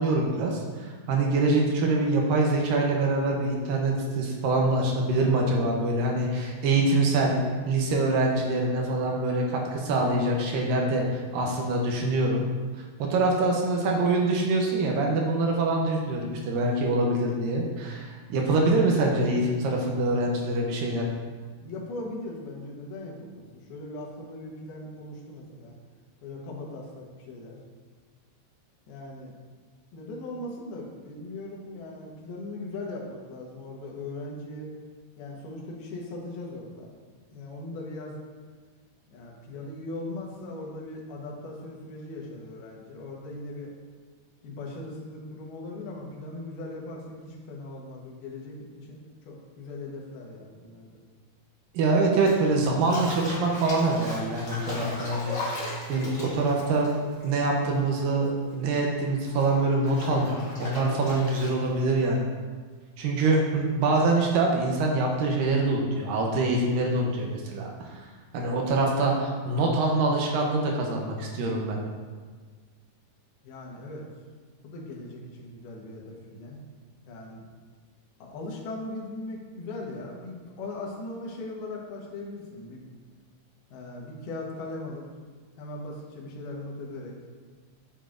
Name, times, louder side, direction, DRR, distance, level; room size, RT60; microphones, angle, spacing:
voice 1, 0.0-7.4 7.7-12.4 13.0-21.1 51.7-55.4 55.9-56.9 57.2-62.3 63.0-67.7 68.3-71.8, right 2 dB, 75° right, 0 dB, 2.3 m, -25 dB
voice 2, 21.6-25.7 26.2-27.6 28.9-29.3 29.9-34.7 35.2-36.9 37.3-38.2 39.1-43.7 44.4-51.0 73.4-74.0 74.6-76.6 77.1-77.4 78.2-82.8 83.7-85.1 85.6-87.1, left 2 dB, 80° left, -2 dB, 3.1 m, -39 dB
Bathtub (filling or washing), 52.1-58.0 58.2-61.8, left 2 dB, 35° left, 1.4 m, -38 dB
9.0 x 7.2 x 2.6 m, 1.5 s
omnidirectional pair, 4.4 m